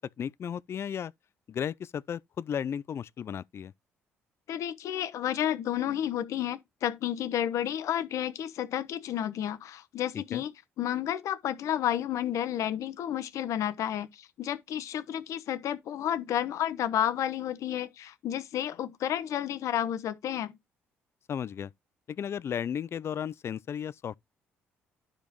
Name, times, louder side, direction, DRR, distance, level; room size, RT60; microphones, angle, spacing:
voice 1, 0.2-1.1 1.5-3.7 10.1-10.4 21.3-21.7 22.1-24.1, left 8 dB, 50° left, 0.4 m, -34 dB
voice 2, 4.5-20.6, left 11 dB, 65° left, 1.0 m, -31 dB
11.5 x 5.1 x 3.1 m
hypercardioid pair, 50°, 6 cm